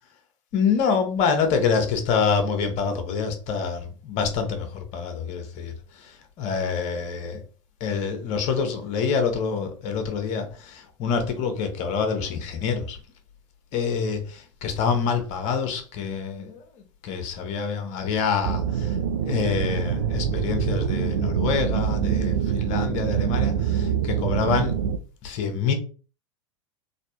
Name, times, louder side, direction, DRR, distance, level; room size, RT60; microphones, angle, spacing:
voice 1, 0.5-7.4 7.8-13.0 13.7-16.6 17.0-19.0 19.2-24.7 25.2-25.7, left 6 dB, 45° left, 0.9 m, -26 dB
sound 1, 18.4-25.0, right 8 dB, 70° right, 0.4 m, -25 dB
3.2 x 2.7 x 2.9 m
figure-of-eight pair, 90°, 16 cm